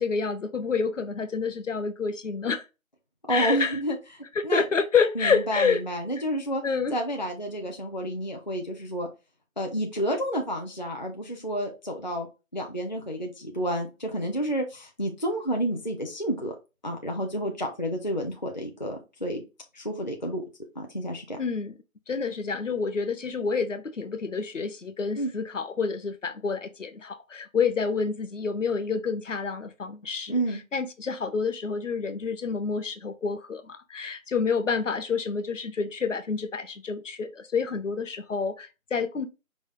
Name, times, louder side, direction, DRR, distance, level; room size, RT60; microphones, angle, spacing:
voice 1, 0.0-2.6 3.3-3.8 4.4-5.8 6.6-7.0 21.4-21.7 22.1-30.4 30.7-39.3, left 5 dB, 60° left, 0.8 m, -28 dB
voice 2, 3.3-4.6 5.2-6.6 6.9-9.1 9.6-12.3 12.5-16.5 16.8-19.4 19.7-20.4 20.8-21.4 25.2-25.3 30.3-30.6, right 1 dB, 35° left, 0.6 m, -30 dB
5.2 x 2.0 x 4.7 m
hypercardioid pair, 175°, 42 cm